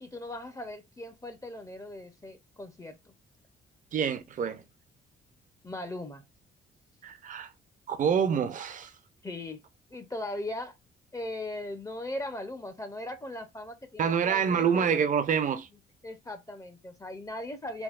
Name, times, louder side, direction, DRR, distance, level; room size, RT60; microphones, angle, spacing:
voice 1, 0.0-3.1 5.6-6.2 9.2-9.6 9.9-10.7 11.1-14.9 16.0-17.8, left 1 dB, 15° left, 0.5 m, -39 dB
voice 2, 3.9-4.6 7.0-7.5 7.9-8.9 14.0-15.7, right 7 dB, 40° right, 0.5 m, -27 dB
3.4 x 2.3 x 2.3 m
cardioid pair, 90°, 20 cm